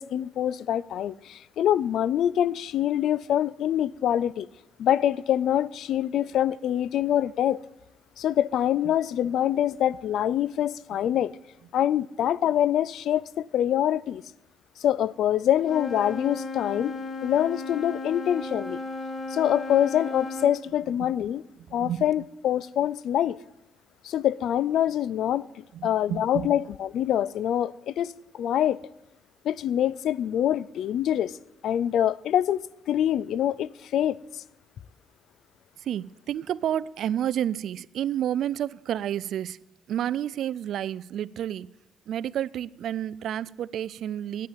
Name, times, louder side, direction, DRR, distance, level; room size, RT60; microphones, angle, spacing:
voice 1, 0.0-4.5 4.8-7.6 8.2-11.3 11.7-14.2 14.8-16.9 17.2-18.8 19.3-21.4 21.7-23.4 24.0-28.8 29.4-31.3 31.6-34.4, left 11 dB, 75° left, 0.3 m, -25 dB
Wind instrument woodwind instrument, 15.6-20.6, left 3 dB, 35° left, 1.5 m, -35 dB
voice 2, 21.7-22.3 25.7-26.5 35.8-39.6 39.9-41.7 42.1-44.5, right 10 dB, 70° right, 0.3 m, -30 dB
9.0 x 8.4 x 8.9 m
cardioid pair, 90°, 0 cm